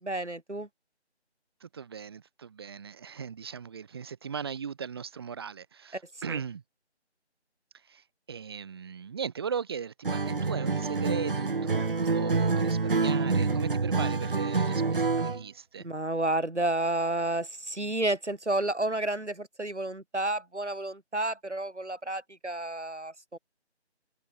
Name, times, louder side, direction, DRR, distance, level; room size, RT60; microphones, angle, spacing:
voice 1, 0.0-0.7 5.9-6.0 6.3-6.4 15.8-23.4, right 1 dB, 85° right, 3.8 m, -31 dB
voice 2, 1.6-6.6 7.9-15.9, right 6 dB, 20° right, 3.6 m, -38 dB
Acoustic guitar, 10.0-15.4, right 4 dB, 50° right, 0.8 m, -27 dB
figure-of-eight pair, 165°, 34 cm